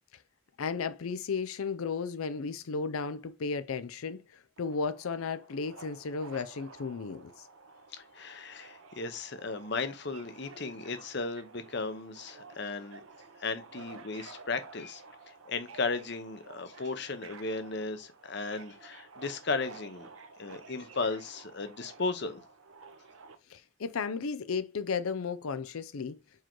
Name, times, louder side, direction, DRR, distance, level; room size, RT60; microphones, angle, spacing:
voice 1, 0.6-7.5 23.5-26.2, left 5 dB, 80° left, 0.5 m, -34 dB
Subway metro underground, 4.6-23.4, right 4 dB, 75° right, 0.8 m, -52 dB
voice 2, 7.9-13.0 13.4-15.0 15.3-20.1 20.4-22.4, left 3 dB, 50° left, 0.8 m, -35 dB
4.7 x 4.5 x 4.5 m
head